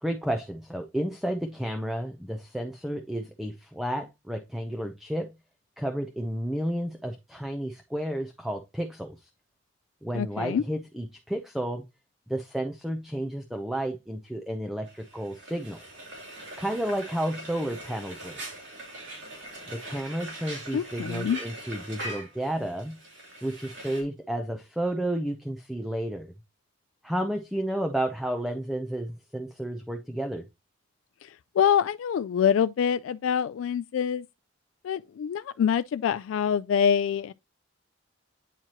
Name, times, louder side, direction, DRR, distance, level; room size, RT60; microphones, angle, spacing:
voice 1, 0.0-5.3 5.8-9.3 10.0-11.8 12.3-15.8 16.6-18.4 19.7-23.0 23.4-26.3 27.0-30.4, right 1 dB, ahead, 0.6 m, -32 dB
voice 2, 10.1-10.6 20.7-21.4 31.6-34.3 34.8-37.3, left 8 dB, 85° left, 0.3 m, -25 dB
Frying (food), 14.9-24.0, right 2 dB, 65° right, 2.9 m, -42 dB
9.0 x 4.6 x 2.9 m
head